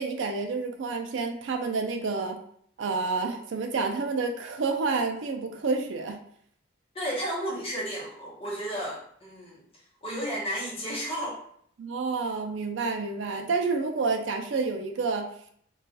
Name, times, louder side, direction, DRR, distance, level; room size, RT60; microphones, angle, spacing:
voice 1, 0.0-2.4 2.8-6.2 11.8-15.3, right 4 dB, 65° right, 5 dB, 0.4 m, -29 dB
voice 2, 6.9-11.4, equal, 25° left, -4 dB, 0.9 m, -33 dB
2.3 x 2.3 x 3.8 m, 0.64 s
head